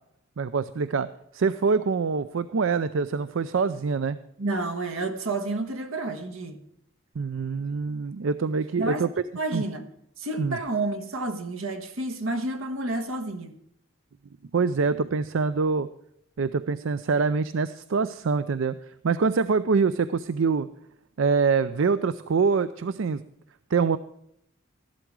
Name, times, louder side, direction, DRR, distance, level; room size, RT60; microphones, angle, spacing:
voice 1, 0.4-1.1 1.3-4.2 7.2-9.1 9.5-9.6 10.4-10.6 14.5-15.9 16.4-18.8 19.0-20.7 21.2-23.2 23.7-24.0, right 5 dB, 65° right, 0.4 m, -25 dB
voice 2, 4.4-6.6 8.8-9.1 9.4-9.9 10.2-13.5, right 2 dB, 85° right, 1.5 m, -30 dB
14.0 x 11.5 x 4.7 m
head